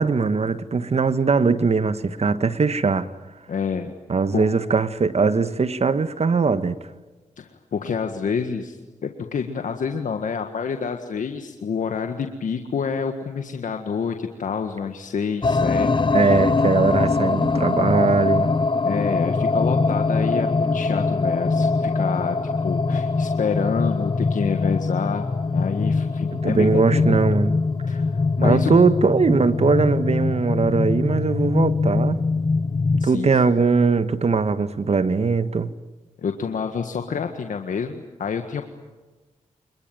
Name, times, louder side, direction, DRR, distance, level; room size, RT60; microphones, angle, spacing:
voice 1, 0.0-3.1 4.1-6.8 16.1-18.5 26.3-27.5 28.4-32.2 33.0-35.7, right 4 dB, 55° right, 1.3 m, -20 dB
voice 2, 3.5-3.9 4.3-4.5 7.4-16.4 18.8-22.4 22.6-25.3 25.5-27.2 27.9-28.7 33.0-33.3 36.2-38.6, left 6 dB, 80° left, 1.7 m, -28 dB
sound 1, 15.4-33.1, left 3 dB, 40° left, 1.0 m, -22 dB
26.5 x 21.5 x 9.3 m
cardioid pair, 55°, 13 cm